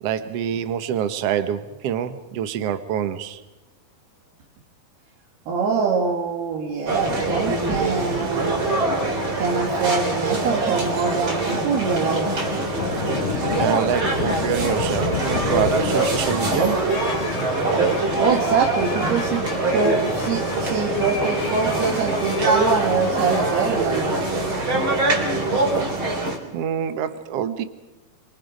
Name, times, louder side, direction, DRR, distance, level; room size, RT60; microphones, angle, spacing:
voice 1, 0.0-3.4 13.6-16.9 26.5-27.6, right 9 dB, 65° right, 1.6 m, -26 dB
voice 2, 5.5-8.7 9.4-12.4 18.2-19.5 19.7-24.1, right 5 dB, 90° right, 4.1 m, -24 dB
sound 1, 6.9-26.4, right 2 dB, 35° right, 4.3 m, -24 dB
sound 2, 12.6-18.2, left 10 dB, 75° left, 1.7 m, -31 dB
sound 3, 16.9-23.5, left 5 dB, 55° left, 3.0 m, -35 dB
29.0 x 24.5 x 5.2 m
omnidirectional pair, 4.4 m